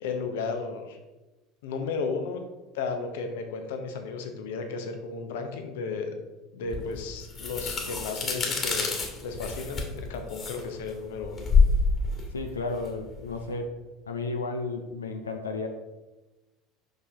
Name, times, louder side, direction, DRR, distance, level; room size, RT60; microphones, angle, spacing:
voice 1, 0.0-1.0 1.6-2.4 2.7-6.1 6.5-11.5, left 4 dB, 70° left, 5 dB, 0.9 m, -34 dB
sound 1, 6.7-13.5, left 4 dB, 35° left, 1.8 m, -27 dB
voice 2, 12.3-13.8 14.1-15.7, left 3 dB, 85° left, 4 dB, 0.5 m, -33 dB
5.5 x 5.5 x 3.6 m, 1.1 s
hypercardioid pair, 70°, 0 cm